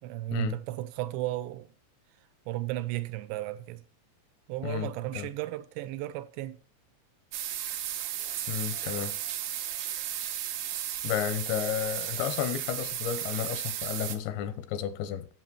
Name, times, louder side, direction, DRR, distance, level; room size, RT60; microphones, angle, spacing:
voice 1, 0.0-1.7 2.5-3.8 4.5-6.6, right 16 dB, 90° right, 2.9 m, -34 dB
voice 2, 4.6-5.3 8.5-9.1 11.0-15.3, left 10 dB, 85° left, 3.1 m, -32 dB
sound 1, 7.3-14.2, right 11 dB, 70° right, 2.4 m, -34 dB
8.7 x 7.4 x 4.5 m
omnidirectional pair, 5.0 m